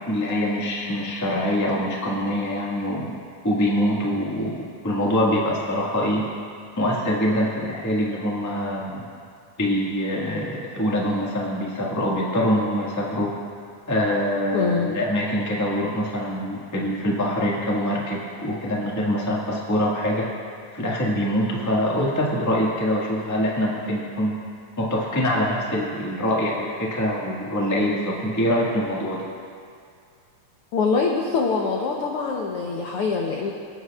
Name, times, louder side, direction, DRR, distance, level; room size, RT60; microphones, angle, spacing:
voice 1, 0.1-3.2 3.4-6.3 6.8-9.0 9.6-13.3 13.9-20.3 20.7-24.4 24.8-29.2, equal, 15° left, -4 dB, 0.5 m, -24 dB
voice 2, 14.5-14.9 30.7-33.5, left 4 dB, 80° left, 0 dB, 1.3 m, -24 dB
26.0 x 9.4 x 2.4 m, 2.3 s
omnidirectional pair, 3.6 m